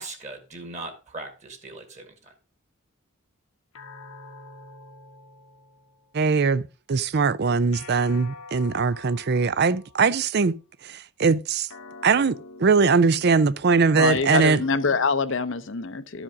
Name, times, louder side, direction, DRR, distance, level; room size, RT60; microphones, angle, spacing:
voice 1, 0.0-2.3, right 2 dB, 35° right, 1.9 m, -39 dB
sound 1, 3.7-6.3 7.7-10.3 11.7-14.3, left 3 dB, 90° left, 1.3 m, -46 dB
voice 2, 6.1-6.6 6.9-10.5 10.8-11.7 12.0-14.6, right 4 dB, 50° right, 0.5 m, -21 dB
voice 3, 13.9-16.2, left 4 dB, 60° left, 0.7 m, -25 dB
12.5 x 5.0 x 5.1 m
head